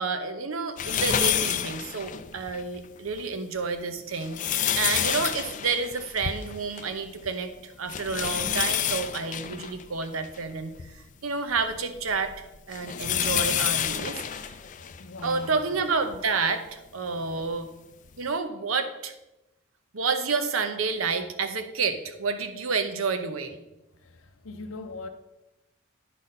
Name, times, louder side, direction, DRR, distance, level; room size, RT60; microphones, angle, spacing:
voice 1, 0.0-12.3 12.7-14.5 15.2-17.7 18.2-19.1 19.9-23.6, right 4 dB, 85° right, 0.8 m, -29 dB
sound 1, 0.8-2.6 3.1-3.2 4.0-7.0 7.2-7.3 7.9-10.9 11.5-15.4 16.1-16.2 17.5-17.6, left 10 dB, 35° left, 0.3 m, -29 dB
voice 2, 14.9-15.9 24.0-25.1, left 3 dB, 80° left, 0.6 m, -40 dB
10.0 x 4.2 x 5.2 m
head